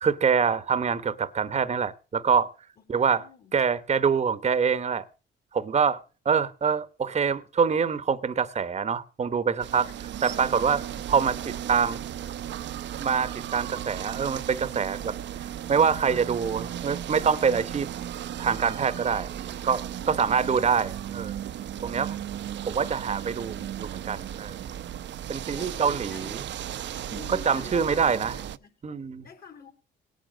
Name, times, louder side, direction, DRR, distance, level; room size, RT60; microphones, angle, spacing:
voice 1, 0.0-2.5 2.9-3.2 3.5-5.1 5.5-6.0 6.2-9.9 10.2-10.8 11.1-12.0 13.0-15.1 15.7-17.9 18.4-19.3 19.6-21.4 21.8-22.1 22.7-24.6 25.3-26.4 27.1-28.3 28.8-29.2, right 6 dB, 35° right, 1.0 m, -25 dB
voice 2, 2.9-3.5 9.9-10.1 20.0-20.8 21.8-22.5 25.5-26.5 27.1-28.7 29.2-29.7, left 6 dB, 50° left, 3.6 m, -49 dB
sound 1, 9.6-28.6, right 10 dB, 65° right, 0.7 m, -36 dB
18.0 x 9.1 x 6.4 m
cardioid pair, 90°, 20 cm